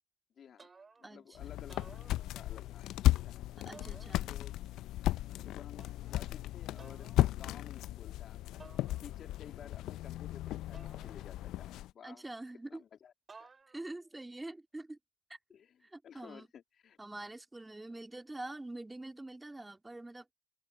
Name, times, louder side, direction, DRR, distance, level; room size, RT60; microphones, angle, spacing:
voice 1, 0.4-0.7 1.0-1.8 2.1-3.0 3.2-3.4 4.3-4.5 5.3-7.1 7.4-8.4 9.0-12.2 12.7-13.1 13.4-13.5 15.5-17.0, left 8 dB, 50° left, 2.0 m, -54 dB
sound 1, 0.6-1.2 1.6-2.7 3.7-4.6 5.8-6.3 6.8-7.3 8.6-9.4 10.7-11.7 13.3-14.0, right 4 dB, 30° right, 2.7 m, -57 dB
sound 2, 1.4-11.9, left 15 dB, 65° left, 0.5 m, -35 dB
voice 2, 3.7-4.3 12.0-12.8 13.7-15.0 15.3-15.4 15.8-16.5 17.0-20.3, right 2 dB, 15° right, 2.3 m, -45 dB
supercardioid pair, 70°, 0 cm